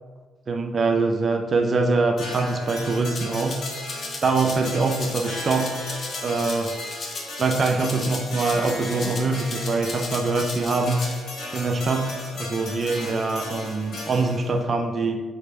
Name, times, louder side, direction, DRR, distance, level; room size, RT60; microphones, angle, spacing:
voice 1, 0.5-3.6 4.2-5.8 6.2-6.8 7.4-11.1 11.5-15.2, right 3 dB, 40° right, 5 dB, 0.4 m, -24 dB
sound 1, 2.2-14.6, left 2 dB, 65° left, 1.0 m, -36 dB
Rattle (instrument), 3.1-11.1, left 3 dB, 45° left, 0.6 m, -37 dB
5.7 x 2.1 x 3.3 m, 1.4 s
cardioid pair, 90°, 0 cm